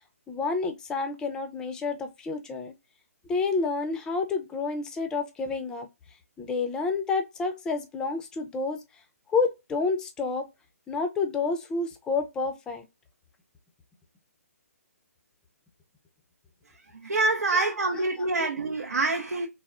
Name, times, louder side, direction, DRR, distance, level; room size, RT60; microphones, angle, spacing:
voice 1, 0.3-2.7 3.3-5.9 6.4-8.8 9.3-10.4 10.9-12.8 17.5-18.5, left 4 dB, 10° left, 0.4 m, -29 dB
voice 2, 17.0-19.5, right 3 dB, 90° right, 0.5 m, -26 dB
3.5 x 2.0 x 2.3 m
hypercardioid pair, 145°, 8 cm